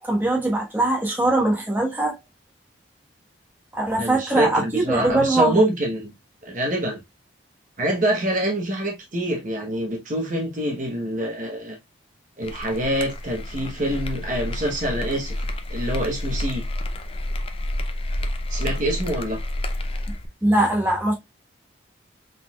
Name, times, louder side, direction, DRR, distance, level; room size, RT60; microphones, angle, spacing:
voice 1, 0.0-2.2 3.7-5.7 20.4-21.1, right 1 dB, 10° right, 1.2 m, -21 dB
voice 2, 4.0-6.1 6.4-7.0 7.8-11.8 12.4-15.4 15.7-16.6 18.5-19.4, right 1 dB, 40° right, 1.0 m, -25 dB
sound 1, 12.4-20.3, left 1 dB, 30° left, 0.5 m, -29 dB
4.7 x 3.8 x 2.3 m
head